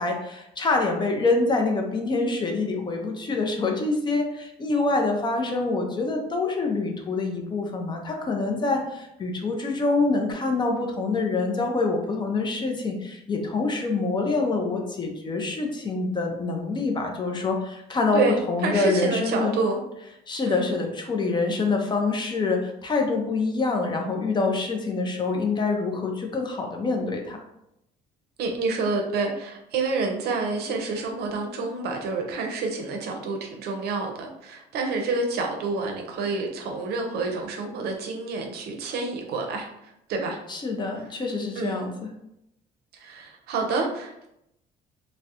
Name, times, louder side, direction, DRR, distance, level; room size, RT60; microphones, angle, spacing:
voice 1, 0.0-19.5 20.3-27.4 40.5-42.1, left 3 dB, 25° left, 2 dB, 0.4 m, -26 dB
voice 2, 18.1-19.8 20.5-20.7 28.4-40.4 41.6-41.9 42.9-44.3, right 3 dB, 70° right, 3 dB, 0.5 m, -28 dB
2.3 x 2.0 x 2.7 m, 0.81 s
cardioid pair, 110°, 17 cm